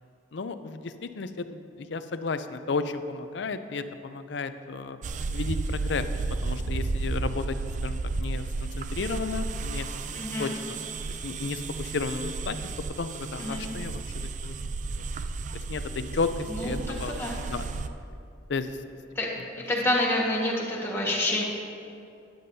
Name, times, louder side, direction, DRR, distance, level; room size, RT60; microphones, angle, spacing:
voice 1, 0.3-5.0 5.3-6.0 6.4-7.6 7.8-10.8 11.2-12.6 13.0-14.5 14.9-15.0 15.5-17.2 17.5-17.7 18.5-18.8, left 4 dB, 70° left, 10 dB, 0.5 m, -33 dB
sound 1, 5.0-17.9, right 3 dB, 40° right, 0.4 m, -33 dB
voice 2, 10.1-10.5 13.4-13.6 16.5-17.4 19.1-19.3 19.7-21.4, left 1 dB, 15° left, -4 dB, 1.4 m, -28 dB
13.0 x 10.5 x 2.7 m, 2.6 s
head